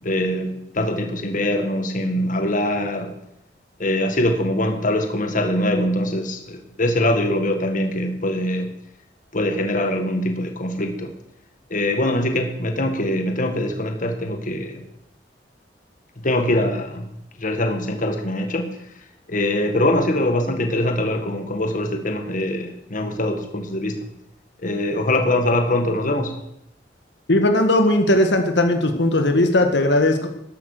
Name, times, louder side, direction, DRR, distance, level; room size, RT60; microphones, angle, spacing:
voice 1, 0.0-3.1 3.8-8.7 9.3-11.1 11.7-14.8 16.2-17.1 17.4-18.7 19.3-24.0 24.6-26.3, left 1 dB, 50° left, 5 dB, 1.7 m, -23 dB
voice 2, 27.3-30.3, left 1 dB, 75° left, 5 dB, 1.7 m, -18 dB
12.5 x 12.5 x 6.6 m, 0.76 s
head